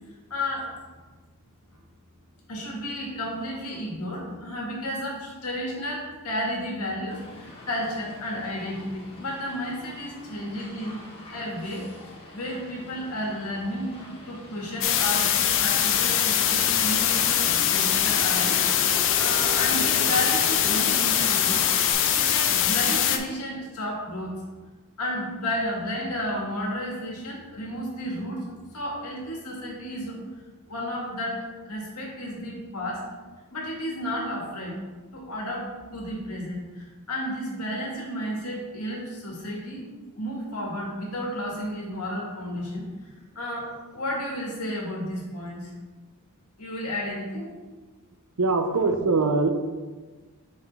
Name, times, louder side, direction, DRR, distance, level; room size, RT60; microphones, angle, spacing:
voice 1, 0.3-0.7 2.5-11.0 11.3-11.9 12.3-24.4 25.0-30.2 30.7-31.4 31.6-33.1 33.5-34.8 35.1-39.9 40.1-42.9 43.3-45.7 46.6-47.5, equal, 90° left, -2 dB, 1.7 m, -32 dB
Motor vehicle (road), 7.1-21.9, left 1 dB, 25° left, 1.3 m, -40 dB
sound 1, 14.8-23.2, left 9 dB, 60° left, 0.5 m, -22 dB
voice 2, 48.4-49.5, right 3 dB, 80° right, 7 dB, 0.6 m, -22 dB
6.6 x 4.7 x 3.3 m, 1.3 s
head